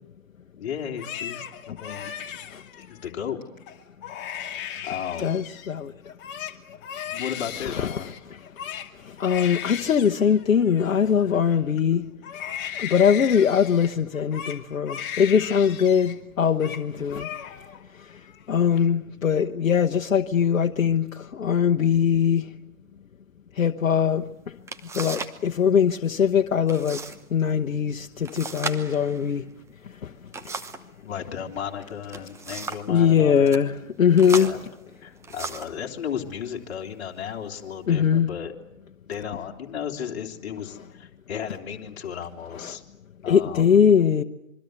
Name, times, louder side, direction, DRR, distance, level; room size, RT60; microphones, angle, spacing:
voice 1, 0.5-2.1 2.8-3.4 4.8-5.4 7.1-8.1 31.0-33.5 34.2-34.6 35.0-38.5 39.1-42.8 43.2-43.7, left 8 dB, 50° left, 3.4 m, -34 dB
Crying sobbing, 0.8-3.1 3.6-5.7 6.0-11.8 12.2-16.2 16.4-16.8 17.1-17.8 18.2-18.8, left 9 dB, 25° left, 2.4 m, -37 dB
voice 2, 5.2-5.9 7.7-7.9 9.0-12.0 12.7-17.3 18.5-22.4 23.6-24.2 24.9-27.0 27.3-29.4 32.9-34.5 37.9-38.3 42.6-42.8 43.3-44.2, left 7 dB, 80° left, 1.2 m, -21 dB
sound 1, 24.2-24.3 24.7-25.4 25.7-26.2 26.7-27.2 27.5-27.6 28.3-30.9 31.9-32.9 33.4-33.6 34.2-35.8 36.6-36.7 37.3-37.8, right 4 dB, 5° right, 1.0 m, -36 dB
26.5 x 23.5 x 7.9 m
hypercardioid pair, 135°, 41 cm